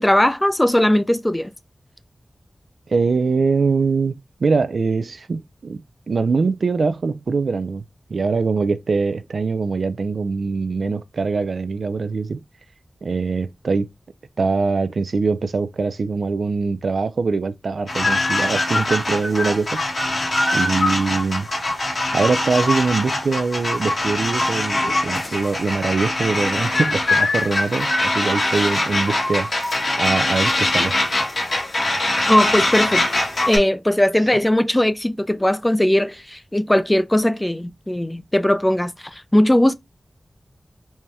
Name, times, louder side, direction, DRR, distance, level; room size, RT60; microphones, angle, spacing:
voice 1, 0.0-1.5 32.3-33.1 33.5-39.7, left 1 dB, 15° left, 0.4 m, -19 dB
voice 2, 2.9-5.8 6.1-7.8 8.1-12.4 13.0-13.9 14.4-19.8 20.5-21.5 22.1-29.5 30.0-31.0, right 4 dB, 85° right, 0.3 m, -22 dB
sound 1, 17.9-33.6, left 2 dB, 70° left, 1.6 m, -22 dB
4.2 x 2.2 x 3.2 m
cardioid pair, 50°, 0 cm